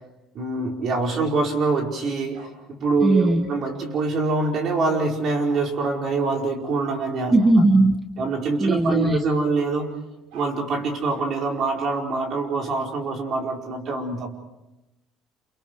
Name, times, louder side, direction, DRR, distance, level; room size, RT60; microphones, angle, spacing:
voice 1, 0.3-7.3 8.2-9.9 10.3-14.3, right 3 dB, 45° right, 1 dB, 4.8 m, -25 dB
Bark, 2.3-2.5 4.4-4.5 5.5-5.6 6.0-6.1 7.4-7.6 10.1-11.2, right 2 dB, 90° right, 6.2 m, -46 dB
voice 2, 3.0-3.5 7.3-8.0 8.6-9.2, right 2 dB, 15° right, 7 dB, 1.2 m, -18 dB
29.5 x 28.5 x 4.7 m, 0.97 s
cardioid pair, 150°, 0 cm